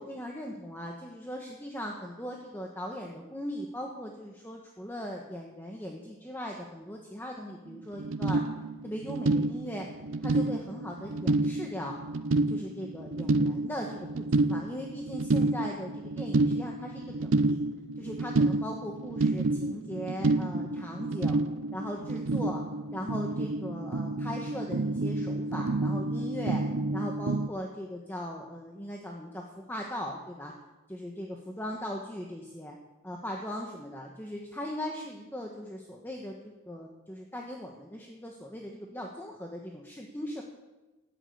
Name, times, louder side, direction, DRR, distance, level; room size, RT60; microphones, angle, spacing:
voice 1, 0.0-8.4 8.8-9.9 10.2-12.0 12.5-17.6 18.0-21.4 21.7-22.6 22.9-26.6 26.9-30.5 30.9-32.8 33.0-40.4, equal, 10° left, 0 dB, 1.3 m, -39 dB
sound 1, 7.7-7.8 7.9-27.5, right 2 dB, 70° right, 0.6 m, -29 dB
13.5 x 10.0 x 8.5 m, 1.1 s
head